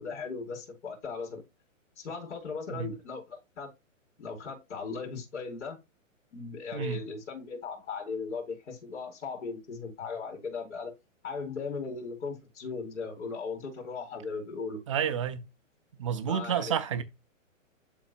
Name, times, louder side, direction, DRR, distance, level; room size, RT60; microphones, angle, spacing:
voice 1, 0.0-1.4 2.0-3.7 4.2-5.8 6.3-10.9 11.2-14.8 16.3-16.7, left 4 dB, 65° left, 4.3 m, -37 dB
voice 2, 6.7-7.0 14.9-15.4 16.0-17.0, right 8 dB, 25° right, 0.6 m, -30 dB
11.5 x 4.1 x 2.5 m
hypercardioid pair, 165°, 40 cm